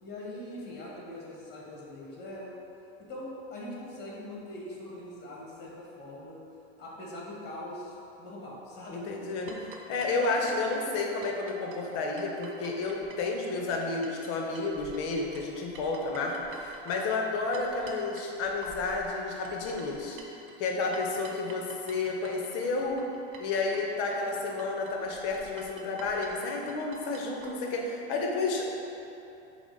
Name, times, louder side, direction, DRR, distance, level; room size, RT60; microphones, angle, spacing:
voice 1, 0.0-2.5 3.1-6.4 6.8-9.6 10.1-10.3, left 1 dB, 30° left, -4 dB, 1.2 m, -42 dB
voice 2, 8.9-9.5 9.9-20.2 20.6-23.0 23.4-28.7, left 3 dB, 45° left, 0 dB, 0.7 m, -31 dB
sound 1, 9.5-14.3 14.5-27.5, right 3 dB, 40° right, 0.5 m, -49 dB
5.9 x 2.1 x 3.8 m, 2.8 s
supercardioid pair, 120°, 34 cm